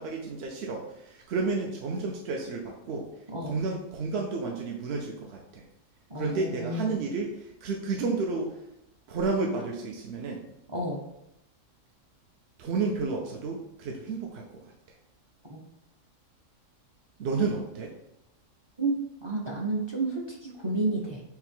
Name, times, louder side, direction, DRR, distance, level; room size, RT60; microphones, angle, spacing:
voice 1, 0.0-3.1 3.4-5.6 6.1-8.6 9.1-10.4 12.6-14.4 17.2-17.9, right 4 dB, 65° right, 0 dB, 0.8 m, -31 dB
voice 2, 6.1-6.9 10.7-11.0 15.5-15.6 18.8-19.0 19.2-21.2, right 2 dB, 30° right, -1 dB, 0.5 m, -30 dB
3.9 x 2.8 x 4.3 m, 0.84 s
omnidirectional pair, 1.3 m